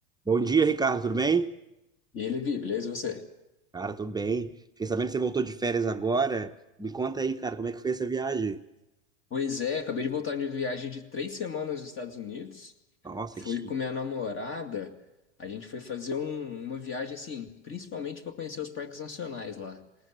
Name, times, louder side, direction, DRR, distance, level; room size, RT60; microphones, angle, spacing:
voice 1, 0.3-1.5 3.7-4.5 4.8-6.5 6.8-8.6 13.0-13.5, right 4 dB, 10° right, 0.8 m, -27 dB
voice 2, 2.1-3.2 9.3-12.7 13.3-15.0 15.4-19.8, left 6 dB, 35° left, 2.2 m, -34 dB
20.5 x 19.0 x 7.7 m
hypercardioid pair, 105°, 37 cm